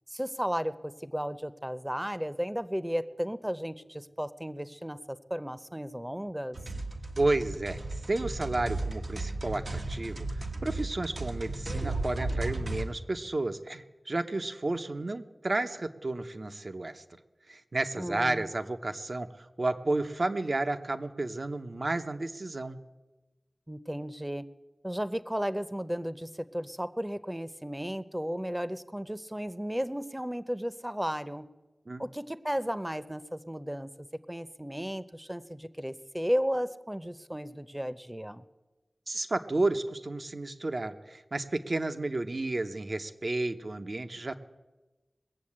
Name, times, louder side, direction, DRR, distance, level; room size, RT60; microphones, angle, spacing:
voice 1, 0.1-6.6 18.0-18.5 23.7-24.5 24.8-31.5 32.0-33.9 34.3-38.4, equal, 10° right, 13 dB, 0.7 m, -34 dB
sound 1, 6.5-12.9, right 2 dB, 75° right, 1.4 m, -35 dB
voice 2, 7.2-7.8 8.1-17.2 17.5-22.8 31.9-32.0 39.1-44.3, right 2 dB, 55° right, 8 dB, 0.9 m, -32 dB
21.0 x 7.4 x 8.7 m, 1.1 s
wide cardioid pair, 75°, 0 cm